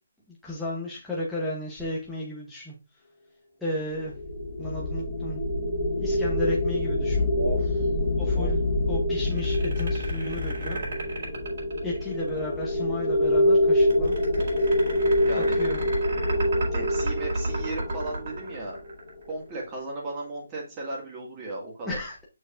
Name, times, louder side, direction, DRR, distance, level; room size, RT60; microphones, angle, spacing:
voice 1, 0.4-2.8 3.6-4.1 4.6-5.4 6.0-7.3 8.1-8.6 8.9-10.8 11.8-14.2 15.3-15.8 21.8-22.2, left 1 dB, ahead, -7 dB, 0.9 m, -33 dB
sound 1, 3.9-19.1, left 1 dB, 30° left, 0.8 m, -26 dB
voice 2, 7.4-7.9 8.3-8.5 15.2-15.6 16.7-18.8 19.3-22.0, right 2 dB, 15° right, -2 dB, 2.0 m, -35 dB
sound 2, 9.2-12.4 13.8-19.3, right 2 dB, 55° right, 4.2 m, -32 dB
6.8 x 6.4 x 2.6 m, 0.27 s
hypercardioid pair, 170°, 0 cm